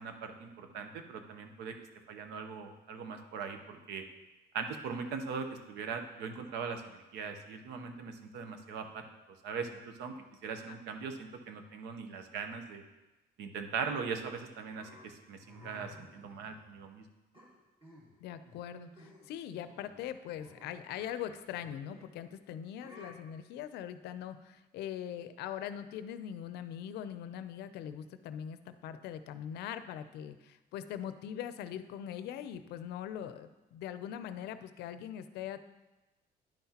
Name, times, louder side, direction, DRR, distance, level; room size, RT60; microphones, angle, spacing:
voice 1, 0.0-1.7 2.1-4.0 4.5-9.0 9.4-10.1 10.4-12.8 13.4-17.0, right 5 dB, 85° right, 7 dB, 0.8 m, -40 dB
sound 1, 14.7-16.9 17.3-18.2 18.4-18.7 19.0-19.4 19.6-22.1 22.8-23.1, left 2 dB, 30° right, 2.1 m, -56 dB
voice 2, 18.2-35.6, left 10 dB, 80° left, 12 dB, 0.5 m, -42 dB
10.5 x 5.7 x 2.9 m, 1.1 s
cardioid pair, 110°, 17 cm